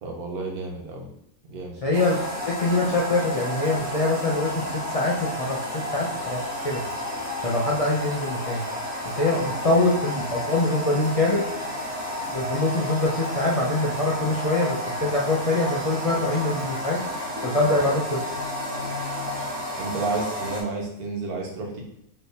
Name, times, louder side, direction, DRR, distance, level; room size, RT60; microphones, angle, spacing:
voice 1, 0.0-1.1 1.5-1.8 9.3-9.5 17.6-17.9 19.8-21.8, right 3 dB, 90° right, 0 dB, 1.5 m, -31 dB
voice 2, 1.8-2.2 2.5-6.8 7.4-8.6 9.0-11.5 12.3-17.0 17.4-18.2, left 2 dB, 65° left, -3 dB, 0.3 m, -24 dB
Toilet flushing, 1.9-20.6, left 1 dB, 55° right, 1.4 m, -31 dB
4.3 x 3.4 x 3.4 m, 0.76 s
omnidirectional pair, 1.5 m